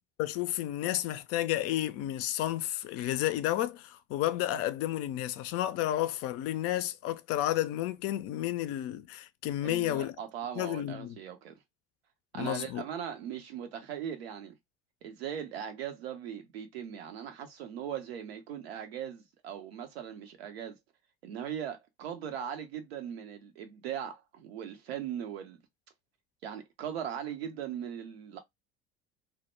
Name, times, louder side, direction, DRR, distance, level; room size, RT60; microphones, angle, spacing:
voice 1, 0.2-10.2 10.6-11.2 12.3-12.8, left 13 dB, 50° left, 0.4 m, -31 dB
voice 2, 9.6-11.6 12.3-14.6 15.0-20.8 21.2-25.6 26.4-28.4, right 9 dB, 80° right, 0.7 m, -39 dB
2.1 x 2.1 x 3.0 m
hypercardioid pair, 70°, 30 cm